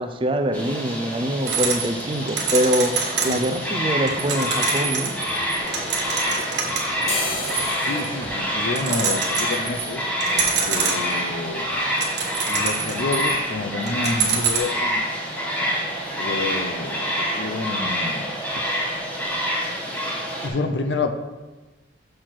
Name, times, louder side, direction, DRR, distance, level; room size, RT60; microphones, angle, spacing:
voice 1, 0.0-2.9 3.2-5.1, equal, 25° right, 7 dB, 0.5 m, -24 dB
sound 1, 0.5-20.5, equal, 5° left, 1.1 m, -27 dB
sound 2, 1.5-3.6 3.9-8.3 8.6-9.9 10.2-11.3 11.7-13.5 13.9-14.6, right 5 dB, 60° right, 1.3 m, -26 dB
voice 2, 3.2-3.6 7.8-10.0 10.3-11.7 12.5-15.1 16.2-18.4 20.4-21.1, left 3 dB, 65° left, 6 dB, 0.6 m, -29 dB
sound 3, 5.7-6.5 6.9-14.6 14.9-15.0 15.3-15.8 16.1-16.4 16.6-16.9 17.1-17.9 18.2-18.4 18.9-19.0 19.2-19.3, left 2 dB, 35° left, 1.0 m, -37 dB
6.5 x 4.3 x 6.0 m, 1.2 s
head